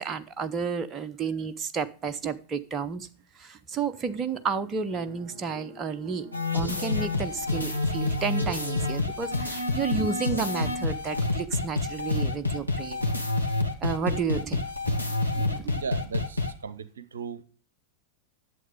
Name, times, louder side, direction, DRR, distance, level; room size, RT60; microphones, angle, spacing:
voice 1, 0.0-3.1 3.3-6.3 6.5-13.0 13.8-14.9 15.3-15.8, right 5 dB, 25° right, 9 dB, 0.9 m, -31 dB
sound 1, 3.7-8.9, left 1 dB, 40° right, 2.1 m, -51 dB
sound 2, 6.3-16.5, left 2 dB, 90° left, 1.5 m, -28 dB
voice 2, 15.7-17.4, right 6 dB, 70° right, 14 dB, 0.8 m, -36 dB
11.0 x 7.7 x 5.1 m, 0.38 s
figure-of-eight pair, 90°, 0 cm